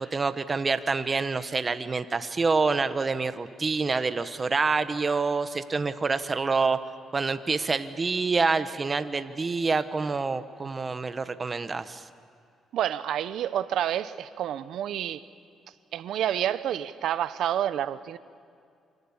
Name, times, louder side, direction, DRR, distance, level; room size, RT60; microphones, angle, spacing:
voice 1, 0.1-6.8 7.1-12.0, right 4 dB, 30° right, 11 dB, 1.2 m, -27 dB
voice 2, 12.7-15.3 15.9-18.2, right 10 dB, 75° right, 14 dB, 0.9 m, -29 dB
28.5 x 25.5 x 7.3 m, 2.3 s
cardioid pair, 90°, 0 cm